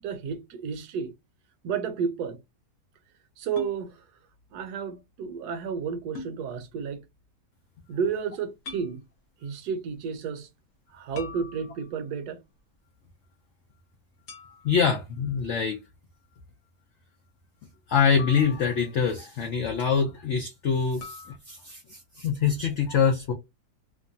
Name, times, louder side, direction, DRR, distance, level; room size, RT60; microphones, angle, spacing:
voice 1, 0.0-1.1 1.6-2.4 3.4-4.0 4.5-7.0 7.9-9.0 9.4-10.5 10.9-12.4, right 6 dB, 70° right, 1.1 m, -31 dB
sound 1, 3.6-3.8 6.1-6.4 8.6-8.9 11.1-12.1 14.3-14.9 18.2-19.1 21.0-21.4, left 4 dB, 60° left, 1.1 m, -42 dB
voice 2, 14.6-15.8 17.9-23.3, left 6 dB, 80° left, 0.6 m, -25 dB
2.9 x 2.2 x 2.6 m
omnidirectional pair, 1.9 m